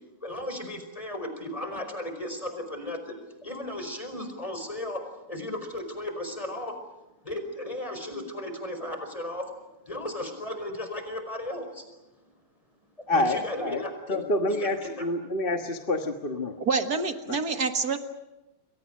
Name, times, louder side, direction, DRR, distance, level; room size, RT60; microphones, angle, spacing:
voice 1, 0.2-3.1 3.4-6.7 7.2-9.6 9.9-11.9 12.2-12.3 13.1-14.2 14.5-14.7 15.0-15.1, left 1 dB, 15° left, 7 dB, 5.0 m, -35 dB
voice 2, 13.1-16.6 17.3-17.4, left 1 dB, 30° left, 5 dB, 1.3 m, -28 dB
voice 3, 16.7-18.0, right 4 dB, 50° right, 7 dB, 1.8 m, -26 dB
29.5 x 23.5 x 6.4 m, 0.97 s
omnidirectional pair, 2.4 m